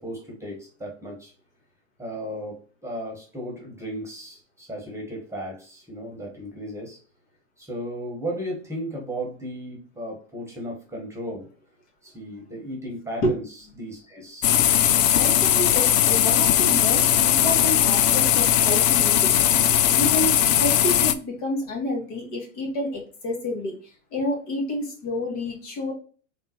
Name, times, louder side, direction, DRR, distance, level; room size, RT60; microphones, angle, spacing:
voice 1, 0.0-1.3 2.0-7.0 7.6-11.5 12.0-14.5, equal, 5° right, -1 dB, 1.3 m, -35 dB
sound 1, 14.4-21.1, left 11 dB, 85° left, 0.5 m, -19 dB
voice 2, 15.1-19.3 19.9-23.8 24.1-25.9, left 1 dB, 50° left, 1 dB, 1.8 m, -29 dB
3.8 x 3.6 x 3.0 m, 0.38 s
hypercardioid pair, 110°, 38 cm